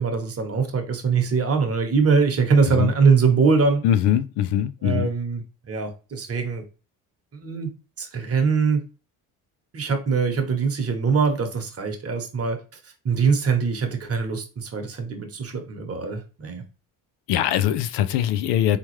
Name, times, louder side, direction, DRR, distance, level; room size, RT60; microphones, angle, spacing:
voice 1, 0.0-3.8 4.8-6.6 7.3-7.7 8.0-8.8 9.7-12.6 13.0-16.6, right 5 dB, 35° right, 1.0 m, -22 dB
voice 2, 3.8-5.1 17.3-18.8, left 11 dB, 80° left, 0.6 m, -22 dB
3.6 x 2.9 x 3.1 m
cardioid pair, 95°, 40 cm